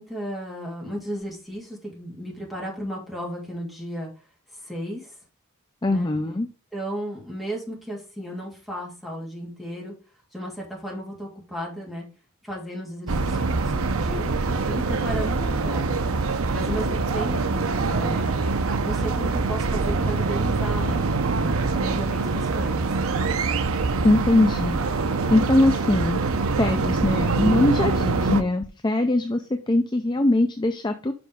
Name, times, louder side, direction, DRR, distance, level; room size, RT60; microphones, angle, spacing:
voice 1, 0.0-4.1 4.6-5.1 5.9-6.1 6.7-9.9 10.3-12.0 12.4-14.3 14.7-16.1 16.5-18.3 18.8-22.9, equal, ahead, -3 dB, 2.8 m, -34 dB
voice 2, 5.8-6.5 24.0-24.8 25.3-26.2 26.6-31.1, left 1 dB, 20° left, 6 dB, 0.5 m, -21 dB
sound 1, 13.1-28.4, right 3 dB, 75° right, 0.7 m, -24 dB
5.7 x 5.3 x 5.0 m, 0.36 s
head